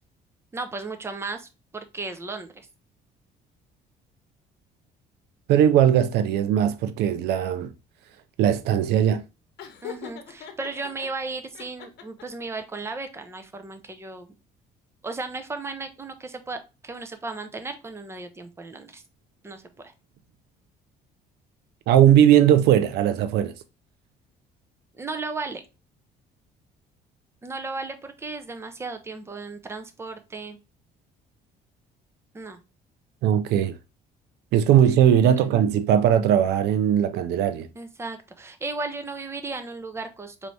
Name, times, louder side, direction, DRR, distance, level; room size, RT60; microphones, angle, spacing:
voice 1, 0.5-2.7 9.8-14.3 15.0-19.0 19.4-19.9 25.0-25.6 27.4-30.6 32.3-32.6 35.4-35.5 37.7-40.5, right 3 dB, 15° right, 0.7 m, -35 dB
voice 2, 5.5-7.7 8.4-9.2 21.9-23.5 33.2-33.8 34.5-37.7, right 10 dB, 75° right, 0.4 m, -19 dB
Laughter, 9.6-11.1 11.5-12.4, left 8 dB, 75° left, 0.9 m, -40 dB
4.3 x 2.7 x 3.2 m
cardioid pair, 110°, 17 cm